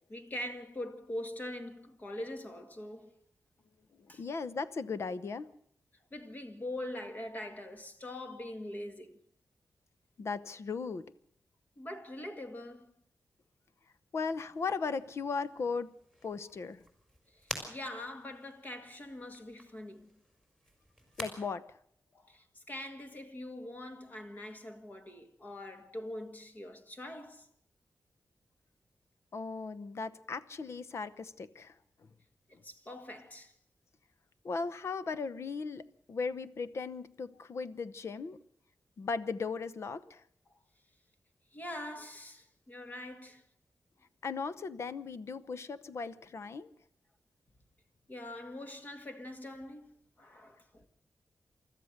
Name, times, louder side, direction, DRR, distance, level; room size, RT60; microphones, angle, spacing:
voice 1, 0.1-3.1 4.1-4.2 6.1-9.2 11.8-12.9 17.3-20.1 22.1-27.5 32.5-33.5 40.5-40.6 41.5-43.4 48.1-50.9, left 1 dB, 30° left, 2.0 m, -43 dB
voice 2, 4.2-5.5 10.2-11.1 14.1-15.9 16.2-16.8 21.2-21.8 29.3-31.8 34.4-38.4 39.0-40.2 44.2-46.7, left 4 dB, 60° left, 0.9 m, -37 dB
sound 1, 14.2-21.3, equal, 10° left, 5.0 m, -49 dB
29.0 x 13.5 x 6.6 m
wide cardioid pair, 165°, 5 cm